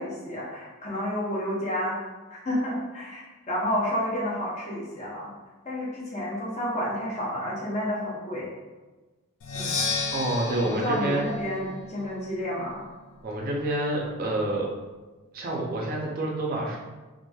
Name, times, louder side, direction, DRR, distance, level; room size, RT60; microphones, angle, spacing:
voice 1, 0.0-2.0 2.3-5.3 5.6-8.5 9.5-9.8 10.6-12.8, equal, 30° left, -5 dB, 0.7 m, -30 dB
Percussion, 9.4-13.2, left 4 dB, 60° left, 0.4 m, -33 dB
voice 2, 10.1-11.3 13.2-14.7 15.3-16.8, right 1 dB, 40° right, -2 dB, 0.4 m, -28 dB
2.9 x 2.5 x 2.2 m, 1.2 s
head